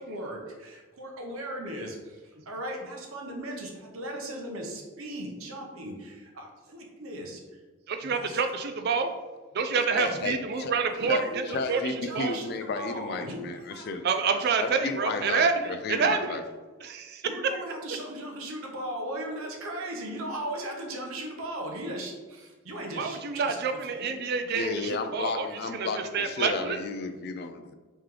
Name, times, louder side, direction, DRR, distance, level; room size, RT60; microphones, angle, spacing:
voice 1, 0.0-2.2 2.5-7.4 8.0-8.4 10.1-10.2 11.0-13.9 15.0-15.3 17.2-23.6 23.9-24.1 24.6-25.0, right 1 dB, 70° right, 1 dB, 0.8 m, -38 dB
voice 2, 7.9-9.1 9.5-11.4 11.7-12.4 14.0-16.4 16.8-17.6 22.9-25.5 25.7-25.9 26.1-26.8, right 5 dB, 45° right, 7 dB, 0.3 m, -28 dB
voice 3, 9.8-10.7 11.1-11.2 11.5-14.0 14.6-15.4 15.7-16.4 24.5-27.7, left 4 dB, 45° left, 7 dB, 0.3 m, -33 dB
3.2 x 3.0 x 3.7 m, 1.3 s
head